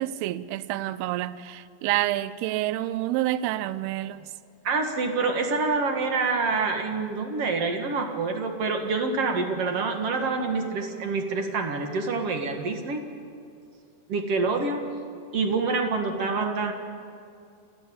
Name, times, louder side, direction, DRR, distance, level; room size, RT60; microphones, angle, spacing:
voice 1, 0.0-4.3, right 14 dB, 80° right, 2.4 m, -28 dB
voice 2, 4.6-13.1 14.1-14.8 15.3-16.7, right 4 dB, 60° right, 1.6 m, -26 dB
28.0 x 14.0 x 8.5 m
omnidirectional pair, 5.0 m